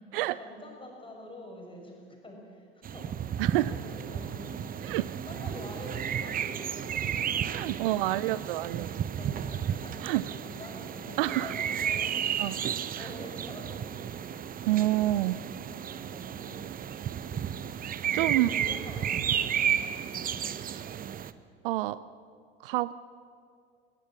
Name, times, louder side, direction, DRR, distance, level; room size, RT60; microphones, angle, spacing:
voice 1, 0.3-4.9 5.3-8.3 8.7-12.3 13.0-14.5 15.2-17.7 18.2-20.5, left 1 dB, 15° left, 0 dB, 7.0 m, -47 dB
sound 1, 2.8-21.3, right 9 dB, 30° right, 0.8 m, -33 dB
voice 2, 3.4-3.7 4.8-5.1 7.5-8.9 10.0-10.2 11.2-11.5 12.4-12.5 12.9-13.1 14.7-15.4 18.1-18.5 21.6-22.0 22.6-22.9, right 16 dB, 60° right, 17 dB, 0.6 m, -27 dB
21.5 x 18.5 x 7.5 m, 2.3 s
figure-of-eight pair, 65°, 30 cm